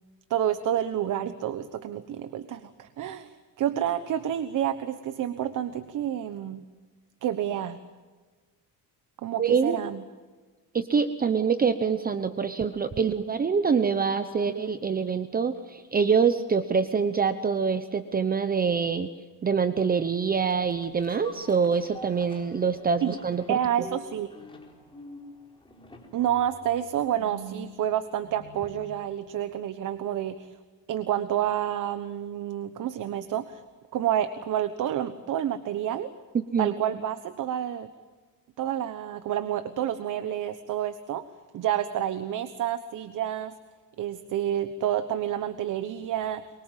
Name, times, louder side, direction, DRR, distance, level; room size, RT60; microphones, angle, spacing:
voice 1, 0.3-6.6 7.2-7.8 9.2-10.0 23.0-23.2 23.5-24.3 26.1-30.5 30.9-33.6 33.9-36.1 36.6-37.9 38.6-41.2 41.5-43.5 44.0-46.4, right 10 dB, 55° right, 11 dB, 1.2 m, -29 dB
voice 2, 9.4-9.8 10.7-19.1 19.4-23.6 36.3-36.7, right 6 dB, 25° right, 10 dB, 0.9 m, -25 dB
sound 1, 20.5-29.1 29.5-29.6, equal, 15° left, 4.3 m, -46 dB
24.0 x 23.5 x 7.5 m, 1.4 s
cardioid pair, 140°, 36 cm